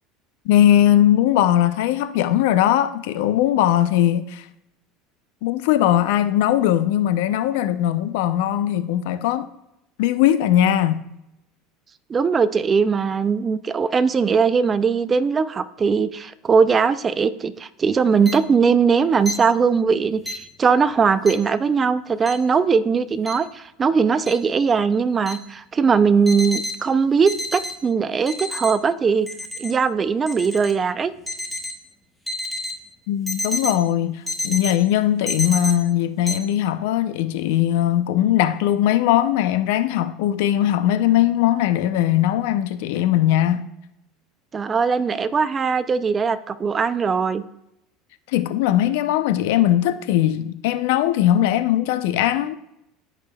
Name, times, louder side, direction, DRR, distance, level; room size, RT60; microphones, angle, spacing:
voice 1, 0.4-4.5 5.4-9.5 10.0-11.1 33.1-43.7 48.3-52.5, left 12 dB, 80° left, 0.5 m, -19 dB
voice 2, 12.1-29.3 29.6-31.1 44.5-47.4, right 5 dB, 25° right, 0.4 m, -20 dB
sound 1, 18.3-18.4 19.3-19.4 20.3-20.4 21.3-21.4 22.3-22.4 23.3-23.4 24.3-24.4 25.3-25.4 26.3-26.7 27.3-27.7 28.3-28.7 29.3-29.7 30.3-30.7 31.3-31.7 32.3-32.7 33.3-33.7 34.3-34.7 35.3-35.7 36.3-36.4, left 1 dB, 5° left, 1.0 m, -28 dB
13.5 x 5.1 x 2.2 m
supercardioid pair, 130°, 0 cm